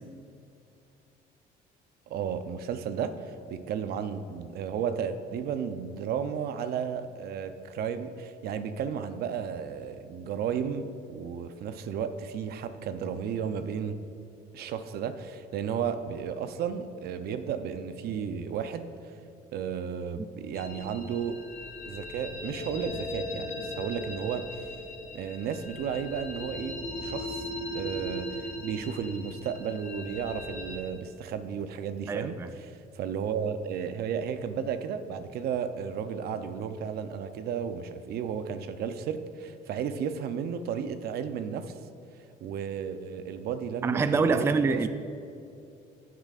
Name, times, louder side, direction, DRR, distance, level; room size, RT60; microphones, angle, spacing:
voice 1, 2.1-14.0 14.5-18.9 19.5-21.4 21.9-24.7 25.1-27.5 27.7-41.8 42.4-44.9, right 7 dB, 65° right, 10 dB, 0.6 m, -33 dB
sound 1, 20.5-30.8, left 1 dB, 45° left, 2.0 m, -38 dB
voice 2, 32.1-32.5 43.8-44.9, right 4 dB, 15° right, 10 dB, 0.3 m, -25 dB
15.0 x 7.5 x 2.5 m, 2.6 s
cardioid pair, 110°, 17 cm